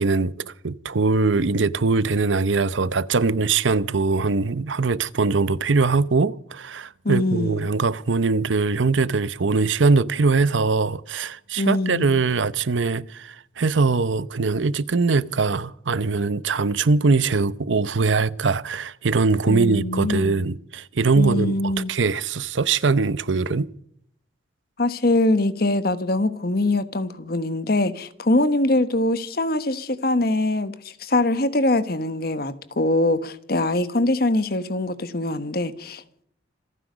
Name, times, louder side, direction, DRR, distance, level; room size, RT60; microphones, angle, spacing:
voice 1, 0.0-23.7, right 4 dB, 80° right, 0.7 m, -22 dB
voice 2, 7.0-7.7 11.6-12.2 19.5-20.4 21.2-21.9 24.8-36.2, left 2 dB, 50° left, 1.2 m, -23 dB
27.0 x 9.9 x 5.1 m
head